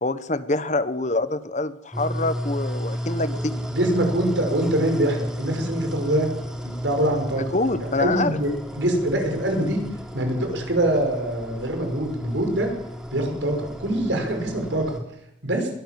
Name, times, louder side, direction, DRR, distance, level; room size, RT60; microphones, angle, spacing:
voice 1, 0.0-3.7 7.5-8.4, left 2 dB, 40° left, 13 dB, 1.2 m, -25 dB
sound 1, 1.9-15.0, equal, 5° right, 3.3 m, -33 dB
voice 2, 3.7-6.3 6.6-9.8 10.1-12.7 13.1-14.9 15.4-15.7, right 1 dB, 85° right, 4 dB, 6.0 m, -24 dB
21.5 x 17.5 x 7.7 m, 0.82 s
head